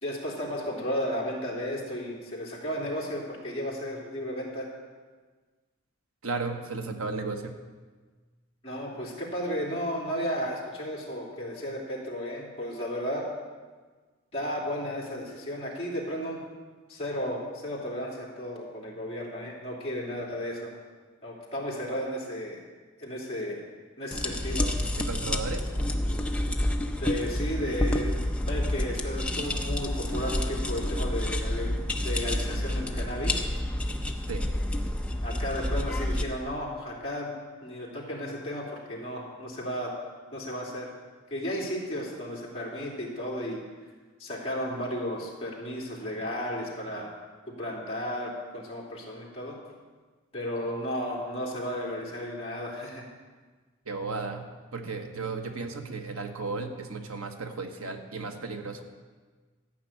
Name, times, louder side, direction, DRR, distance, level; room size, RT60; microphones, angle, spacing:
voice 1, 0.0-4.7 8.6-13.3 14.3-16.4 16.9-20.7 21.2-22.6 23.0-23.6 24.0-24.8 27.0-28.2 28.4-31.8 32.0-33.5 35.2-37.3 37.6-39.9 40.3-40.9 41.3-43.6 44.2-47.2 47.5-49.6 50.3-53.1, equal, 30° left, -5 dB, 2.9 m, -34 dB
voice 2, 6.2-7.6 25.1-25.6 34.3-34.4 53.8-58.9, right 3 dB, 90° right, 4 dB, 1.3 m, -34 dB
sound 1, 24.1-36.2, left 1 dB, 5° left, 0.6 m, -29 dB
13.5 x 6.0 x 8.6 m, 1.4 s
head